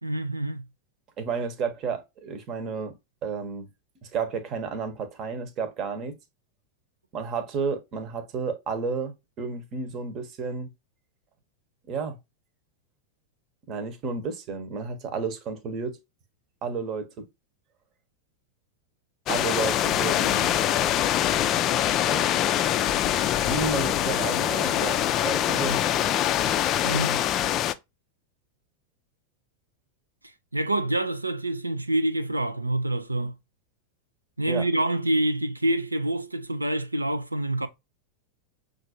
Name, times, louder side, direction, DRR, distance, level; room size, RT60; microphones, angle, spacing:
voice 1, 0.0-0.7 26.8-27.2 30.5-33.3 34.4-37.7, right 1 dB, 90° right, 0.4 m, -26 dB
voice 2, 1.2-2.9 3.2-3.7 4.1-6.2 7.1-10.7 11.9-12.2 13.7-16.0 16.6-17.3 19.3-20.6 22.0-22.3 23.4-25.9 34.5-34.7, right 5 dB, 40° right, 0.9 m, -31 dB
sound 1, 19.3-27.7, left 11 dB, 35° left, 0.3 m, -24 dB
6.0 x 2.6 x 2.6 m
figure-of-eight pair, 90°, 0 cm